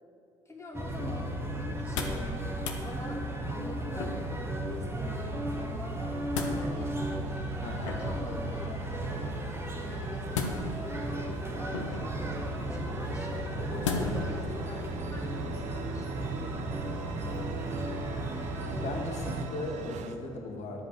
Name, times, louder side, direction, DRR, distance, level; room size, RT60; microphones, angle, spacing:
voice 1, 0.5-6.3 6.5-7.0 8.0-9.2 9.7-16.6, left 2 dB, 20° left, -2 dB, 2.3 m, -45 dB
sound 1, 0.7-19.5, right 1 dB, 15° right, 1.5 m, -35 dB
sound 2, 1.7-2.3 2.6-2.8 4.0-4.4 5.9-6.6 7.8-8.3 10.3-10.9 11.7-12.2 13.8-14.3 14.8-14.9, left 5 dB, 75° left, 0.9 m, -34 dB
sound 3, 5.5-20.2, right 6 dB, 50° right, 0.7 m, -43 dB
voice 2, 7.6-8.0 18.7-20.9, left 2 dB, 45° left, 1 dB, 1.7 m, -38 dB
11.5 x 5.3 x 7.7 m, 2.9 s
figure-of-eight pair, 55°, 15 cm